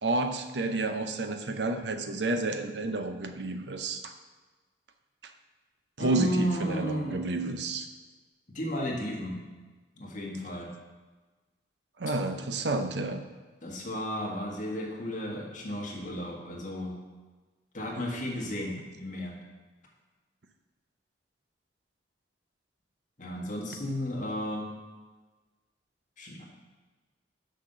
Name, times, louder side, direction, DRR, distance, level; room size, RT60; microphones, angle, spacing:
voice 1, 0.0-4.1 6.0-7.9 12.0-13.2, right 2 dB, 75° right, 7 dB, 0.7 m, -30 dB
voice 2, 6.0-7.3 8.5-9.4 10.0-10.7 13.6-17.0 17.7-19.4 23.2-24.7 26.2-26.4, equal, 45° left, -1 dB, 1.8 m, -33 dB
6.4 x 5.8 x 6.7 m, 1.3 s
head